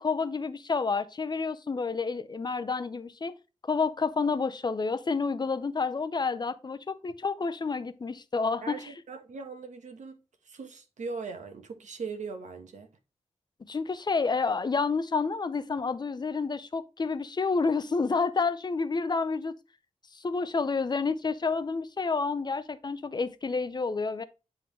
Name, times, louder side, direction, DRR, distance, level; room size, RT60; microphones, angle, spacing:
voice 1, 0.0-3.4 3.6-8.9 13.7-19.5 20.1-24.2, left 4 dB, 35° left, 0.6 m, -29 dB
voice 2, 8.6-10.2 10.4-12.9, right 4 dB, 85° right, 1.2 m, -40 dB
9.3 x 3.8 x 3.1 m
wide cardioid pair, 125°, 12 cm